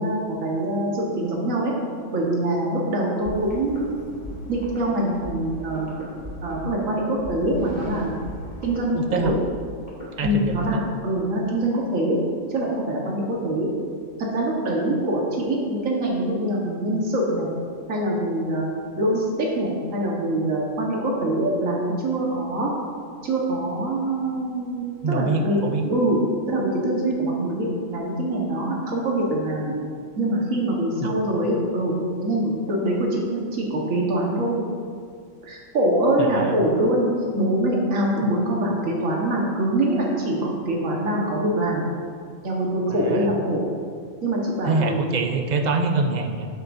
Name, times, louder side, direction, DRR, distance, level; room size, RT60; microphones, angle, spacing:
voice 1, 0.0-1.7 2.1-4.0 4.5-5.9 6.4-8.2 8.6-9.4 10.2-12.2 12.5-13.7 14.2-17.5 17.9-18.7 19.0-22.7 23.2-25.6 25.9-26.2 26.5-29.7 30.2-31.9 32.2-34.6 35.4-37.1 37.4-41.9 42.4-43.6 44.2-45.0, right 1 dB, 70° right, -3 dB, 1.7 m, -24 dB
sound 1, 3.3-10.8, equal, 35° left, 2.5 m, -37 dB
voice 2, 8.9-9.4 10.2-10.9 25.0-25.9 31.0-31.1 36.2-36.5 42.9-43.3 44.7-46.5, right 3 dB, 45° right, 5 dB, 0.6 m, -25 dB
12.0 x 8.2 x 2.6 m, 2.1 s
omnidirectional pair, 1.4 m